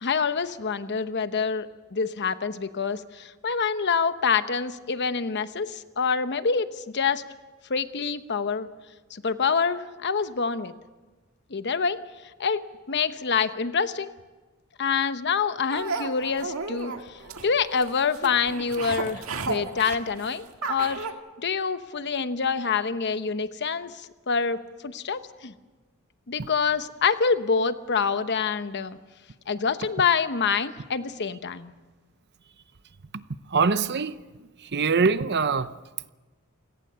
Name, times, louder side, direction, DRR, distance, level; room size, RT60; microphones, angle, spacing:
voice 1, 0.0-7.2 7.7-8.7 9.1-10.7 11.5-12.0 12.4-14.1 14.8-17.2 17.4-21.1 21.4-24.6 24.8-25.5 26.3-29.0 29.5-31.7, left 5 dB, 55° left, 1.0 m, -26 dB
sound 1, 15.7-21.1, right 4 dB, 70° right, 1.9 m, -33 dB
voice 2, 33.5-34.1 34.6-35.7, right 5 dB, 55° right, 0.8 m, -23 dB
28.5 x 17.5 x 6.8 m
head